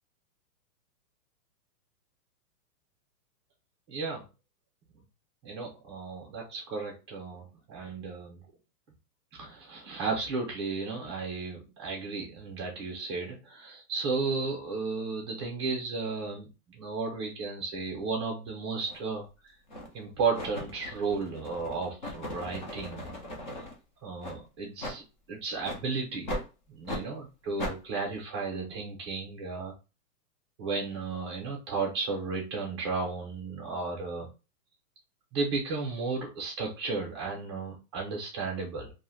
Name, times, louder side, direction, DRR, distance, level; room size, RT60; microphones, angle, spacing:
voice 1, 3.9-4.2 5.4-8.4 9.3-16.5 16.8-19.5 19.9-23.1 24.0-25.0 25.3-26.3 26.7-29.7 30.6-34.3 35.3-38.9, right 4 dB, 20° right, -1 dB, 0.5 m, -34 dB
sound 1, 18.9-19.0 19.7-20.0 20.3-23.7 24.2-24.4 24.8-25.0 25.6-25.8 26.3-26.5 26.9-27.0 27.6-27.8, left 1 dB, 30° left, 0.4 m, -38 dB
2.7 x 2.1 x 3.0 m, 0.29 s
hypercardioid pair, 165°, 47 cm